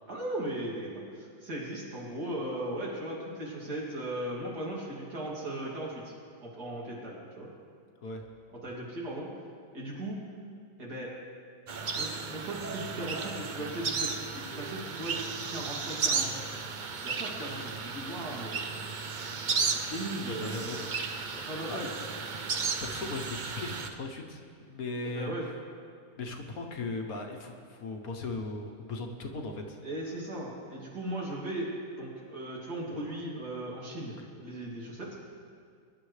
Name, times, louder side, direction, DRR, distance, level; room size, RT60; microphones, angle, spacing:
voice 1, 0.1-6.1 6.4-7.5 8.5-9.3 9.7-10.2 10.8-11.1 11.9-16.5 17.0-18.7 19.5-20.9 21.3-21.9 25.1-25.5 29.8-35.2, right 1 dB, 70° right, -4 dB, 3.1 m, -38 dB
sound 1, 11.7-23.9, right 5 dB, 85° right, 0.4 m, -34 dB
voice 2, 20.2-20.9 21.7-21.8 22.8-25.5 26.2-29.8, left 3 dB, 60° left, 3 dB, 1.4 m, -38 dB
22.0 x 11.0 x 3.2 m, 2.2 s
omnidirectional pair, 1.8 m